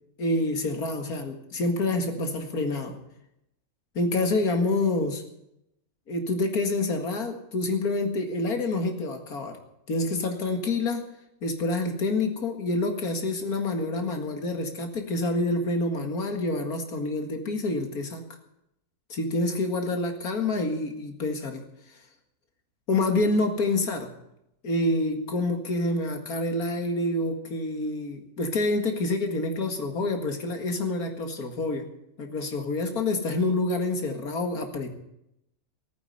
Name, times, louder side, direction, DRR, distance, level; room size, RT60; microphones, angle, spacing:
voice 1, 0.2-2.9 4.0-5.2 6.1-9.6 9.9-11.0 11.4-18.2 19.1-21.6 22.9-24.1 24.6-31.9 32.2-34.9, left 2 dB, 85° left, 5 dB, 2.5 m, -27 dB
16.5 x 9.6 x 8.1 m, 0.80 s
omnidirectional pair, 1.5 m